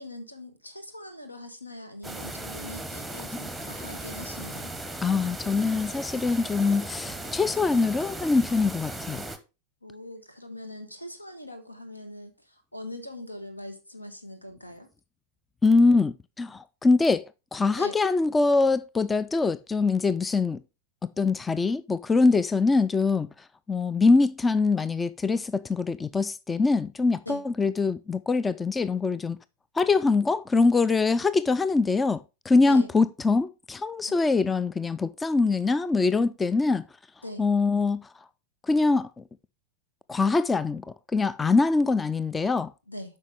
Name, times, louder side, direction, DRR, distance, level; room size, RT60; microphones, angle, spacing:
voice 1, 0.0-4.7 9.8-14.9 17.7-18.0 27.2-27.5 32.7-32.9 34.1-34.2 37.2-37.5 42.9-43.2, left 1 dB, 85° left, 1.4 m, -42 dB
sound 1, 2.0-9.4, right 1 dB, 5° right, 1.0 m, -37 dB
voice 2, 5.0-9.2 15.6-20.6 21.2-23.3 23.7-29.4 29.8-36.8 37.4-38.0 38.7-39.2 40.1-40.9 41.1-42.7, left 3 dB, 15° left, 0.3 m, -23 dB
8.2 x 5.4 x 3.5 m
figure-of-eight pair, 90°, 0 cm